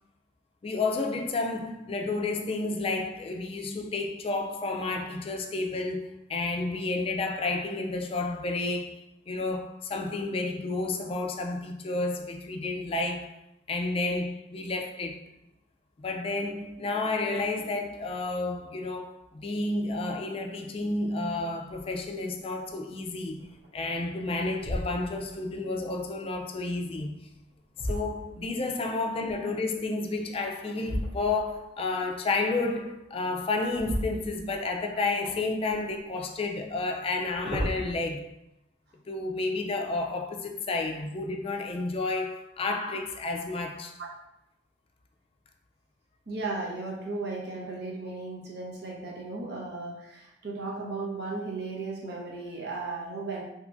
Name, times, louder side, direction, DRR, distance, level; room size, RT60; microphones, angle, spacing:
voice 1, 0.6-13.4 13.7-15.2 16.0-23.4 23.7-27.3 27.8-38.4 39.1-44.0, left 3 dB, 30° left, 0.3 m, -31 dB
sound 1, 21.7-22.1 22.7-22.8 23.4-24.0 24.5-25.4 27.1-28.7 30.8-31.6 33.7-34.8 35.2-36.0 37.0-37.9, equal, 35° right, 0.6 m, -35 dB
voice 2, 46.3-53.4, right 3 dB, 65° right, 0.9 m, -35 dB
3.4 x 2.9 x 2.5 m
head